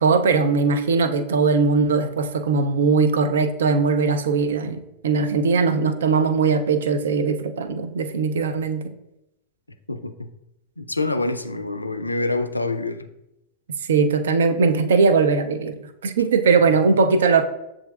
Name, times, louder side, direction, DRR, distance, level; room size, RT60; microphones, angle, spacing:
voice 1, 0.0-8.9 13.8-17.4, right 4 dB, 65° right, 0.4 m, -20 dB
voice 2, 9.9-10.3 10.8-13.1, left 2 dB, 85° left, 0.3 m, -26 dB
7.3 x 2.5 x 2.3 m
figure-of-eight pair, 90°, 0 cm